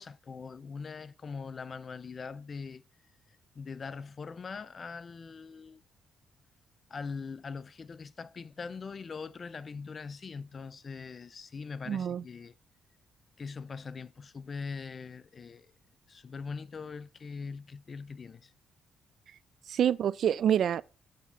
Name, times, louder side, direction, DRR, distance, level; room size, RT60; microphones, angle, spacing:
voice 1, 0.0-2.8 3.5-5.8 6.9-12.5 13.4-15.7 16.1-18.5, left 5 dB, 40° left, 0.4 m, -42 dB
voice 2, 11.9-12.2 19.7-20.8, right 9 dB, 65° right, 0.3 m, -26 dB
7.5 x 3.6 x 5.6 m
cardioid pair, 90°, 0 cm